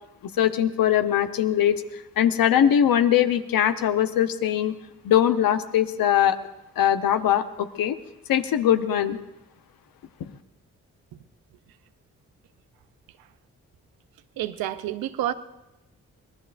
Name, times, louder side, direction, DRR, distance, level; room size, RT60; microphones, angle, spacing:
voice 1, 0.4-1.8 2.2-4.7 5.0-6.4 6.8-8.0 8.3-9.2 10.2-10.3, left 10 dB, 70° left, 9 dB, 0.9 m, -21 dB
voice 2, 14.4-15.3, right 13 dB, 85° right, 12 dB, 0.7 m, -28 dB
25.0 x 19.0 x 2.6 m, 0.95 s
supercardioid pair, 40°, 35 cm